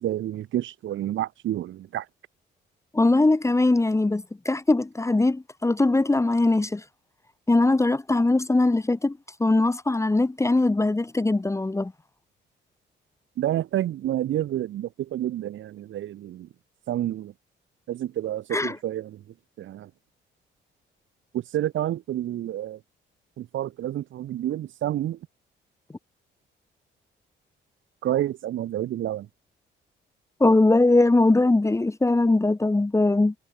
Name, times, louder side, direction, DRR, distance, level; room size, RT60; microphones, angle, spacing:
voice 1, 0.0-2.1 13.4-16.5 16.9-17.3 17.9-19.2 19.6-19.9 21.3-22.8 23.4-25.2 28.0-29.3, right 12 dB, 75° right, 2.4 m, -29 dB
voice 2, 2.9-6.8 7.5-11.9 18.5-18.8 30.4-33.3, left 2 dB, 15° left, 1.4 m, -21 dB
cardioid pair, 90°, 20 cm